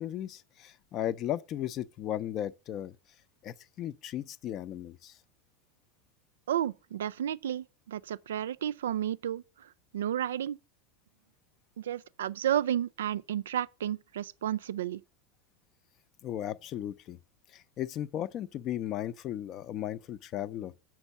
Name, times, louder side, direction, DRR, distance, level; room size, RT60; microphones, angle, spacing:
voice 1, 0.0-3.0 3.4-5.2 16.2-17.2 17.5-20.7, left 11 dB, 35° left, 0.5 m, -36 dB
voice 2, 6.5-10.6 11.8-15.0, right 10 dB, 65° right, 0.4 m, -32 dB
7.9 x 5.9 x 7.1 m
figure-of-eight pair, 85°, 0 cm